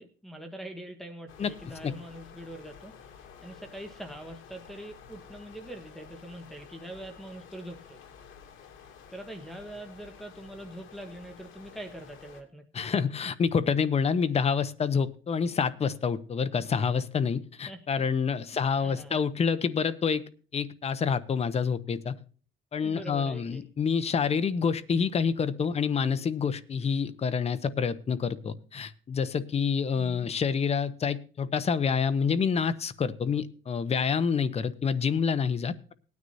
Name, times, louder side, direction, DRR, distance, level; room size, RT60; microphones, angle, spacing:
voice 1, 0.0-8.0 9.1-12.9 17.7-18.1 18.5-19.2 22.8-23.6 29.9-30.3, right 1 dB, ahead, 2 dB, 1.2 m, -43 dB
sound 1, 1.3-12.4, left 7 dB, 75° left, 2.5 m, -51 dB
voice 2, 12.7-20.2 20.5-22.2 22.7-35.9, left 6 dB, 30° left, 12 dB, 0.8 m, -27 dB
18.5 x 9.6 x 2.7 m, 0.39 s
cardioid pair, 150°, 21 cm